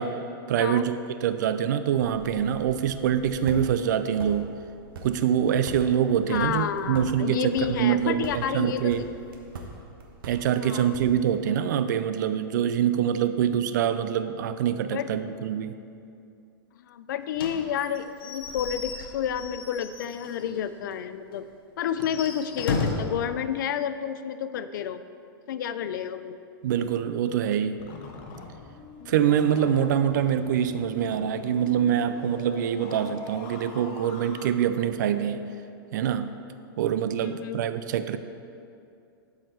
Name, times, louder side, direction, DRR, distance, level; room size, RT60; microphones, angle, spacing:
voice 1, 0.0-4.5 5.0-9.1 10.2-15.7 26.6-27.8 29.1-35.5 35.9-36.3 36.8-38.2, right 9 dB, 50° right, 11 dB, 0.4 m, -25 dB
sound 1, 1.9-11.4, right 2 dB, 70° right, 1.2 m, -44 dB
voice 2, 6.3-9.1 10.6-11.0 14.9-15.1 16.8-21.5 21.8-25.0 25.5-26.4 37.2-37.6, left 9 dB, 55° left, 12 dB, 0.4 m, -30 dB
Slam / Squeak / Wood, 17.4-20.6 20.9-21.0 21.3-21.4 21.9-23.2, left 4 dB, 75° left, 1.1 m, -33 dB
sound 2, 27.8-34.5, left 4 dB, 35° left, 0.8 m, -43 dB
12.0 x 4.9 x 4.5 m, 2.6 s
supercardioid pair, 165°, 12 cm